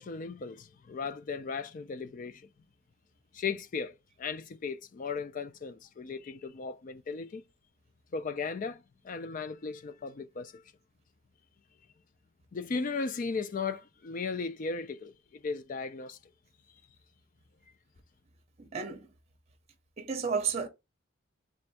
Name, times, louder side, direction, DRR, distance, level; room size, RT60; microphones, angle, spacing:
voice 1, 0.0-2.5 3.3-7.4 8.1-10.6 12.5-16.2, left 4 dB, 40° left, 0.4 m, -36 dB
voice 2, 18.6-19.1 20.0-20.7, right 6 dB, 30° right, 0.6 m, -32 dB
3.3 x 2.6 x 4.5 m
head